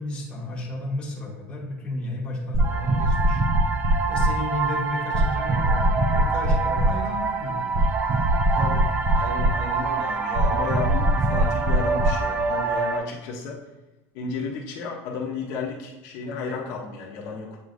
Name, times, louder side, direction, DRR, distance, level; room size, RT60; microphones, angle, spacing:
voice 1, 0.0-3.4 4.1-7.8, left 1 dB, 15° left, -4 dB, 1.2 m, -32 dB
sound 1, 2.5-13.0, right 2 dB, 25° right, 0.5 m, -22 dB
voice 2, 8.6-8.9 9.1-13.6 14.1-17.6, left 4 dB, 50° left, -1 dB, 0.8 m, -33 dB
7.9 x 4.8 x 2.6 m, 1.1 s
cardioid pair, 180°, 7 cm